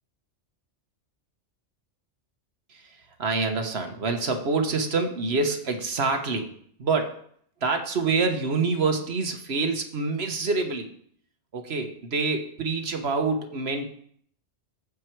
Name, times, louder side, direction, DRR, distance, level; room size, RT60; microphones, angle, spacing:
voice 1, 2.7-6.5 6.8-7.2 7.6-10.9 11.5-13.9, right 4 dB, 60° right, 5 dB, 1.4 m, -26 dB
14.5 x 4.8 x 4.6 m, 0.62 s
omnidirectional pair, 1.2 m